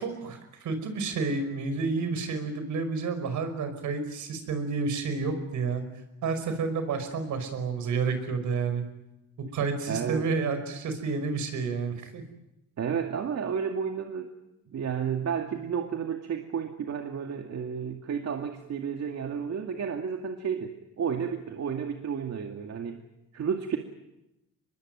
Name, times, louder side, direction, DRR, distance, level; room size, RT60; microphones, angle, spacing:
voice 1, 0.0-5.8 6.2-8.8 9.5-12.2, right 4 dB, 75° right, 9 dB, 5.6 m, -30 dB
voice 2, 9.9-10.3 12.8-14.3 14.7-23.0 23.3-23.8, right 7 dB, 60° right, 4 dB, 2.4 m, -32 dB
24.5 x 21.5 x 9.2 m, 0.91 s
cardioid pair, 90°, 30 cm